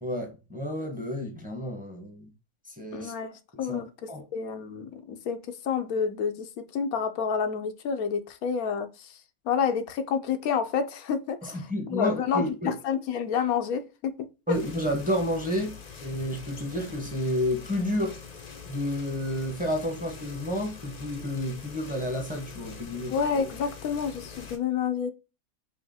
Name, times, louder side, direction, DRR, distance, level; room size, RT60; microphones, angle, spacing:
voice 1, 0.0-2.3 2.7-3.1 3.5-3.8 4.1-4.2 11.4-12.7 14.5-15.7 16.0-18.2 18.7-23.1, equal, 5° right, 0.9 m, -30 dB
voice 2, 2.9-3.3 3.6-9.1 9.5-14.6 23.1-25.1, left 6 dB, 85° left, 1.1 m, -29 dB
sound 1, 14.5-24.6, left 6 dB, 40° left, 0.6 m, -44 dB
5.4 x 2.8 x 2.7 m
omnidirectional pair, 1.5 m